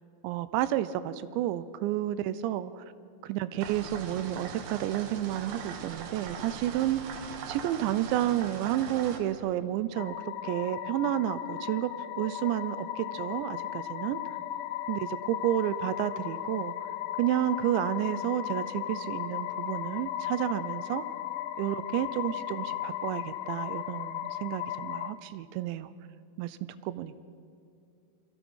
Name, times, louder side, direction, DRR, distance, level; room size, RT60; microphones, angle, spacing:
voice 1, 0.2-2.8 3.2-7.2 7.5-10.2 10.4-14.2 14.9-16.8 17.2-21.0 21.6-25.9 26.4-26.6 26.8-27.2, right 12 dB, 80° right, 14 dB, 2.9 m, -31 dB
sound 1, 3.6-9.2, right 6 dB, 65° right, 3.1 m, -41 dB
sound 2, 10.0-25.1, left 12 dB, 75° left, 2.3 m, -36 dB
28.5 x 23.5 x 5.6 m, 2.5 s
omnidirectional pair, 5.3 m